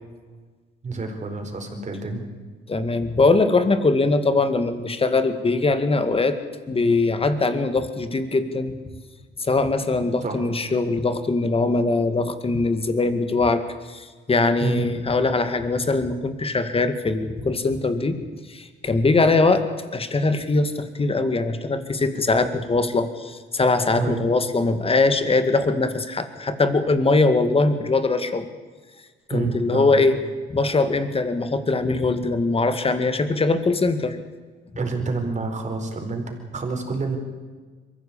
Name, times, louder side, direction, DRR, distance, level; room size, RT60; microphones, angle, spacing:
voice 1, 0.8-2.3 10.2-10.4 14.6-14.9 24.0-24.2 29.3-29.9 34.8-37.2, right 4 dB, 35° right, 4 dB, 4.6 m, -28 dB
voice 2, 2.7-6.4 6.7-8.8 9.4-13.6 13.9-19.6 19.9-28.5 29.3-30.2 30.5-34.2, left 3 dB, 30° left, 10 dB, 2.1 m, -21 dB
22.5 x 15.5 x 8.7 m, 1.4 s
cardioid pair, 90°, 20 cm